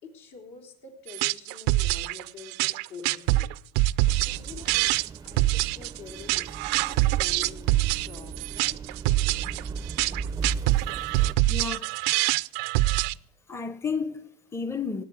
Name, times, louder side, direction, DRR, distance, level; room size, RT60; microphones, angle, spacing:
voice 1, 0.0-3.5 4.2-4.9 5.2-8.8, left 5 dB, 70° left, 4.4 m, -46 dB
sound 1, 1.1-13.1, right 18 dB, 75° right, 0.5 m, -25 dB
sound 2, 4.0-11.3, right 5 dB, 20° right, 0.6 m, -37 dB
voice 2, 11.5-11.9 13.5-15.0, left 5 dB, 15° left, 0.8 m, -32 dB
18.5 x 7.9 x 8.1 m
supercardioid pair, 110°, 20 cm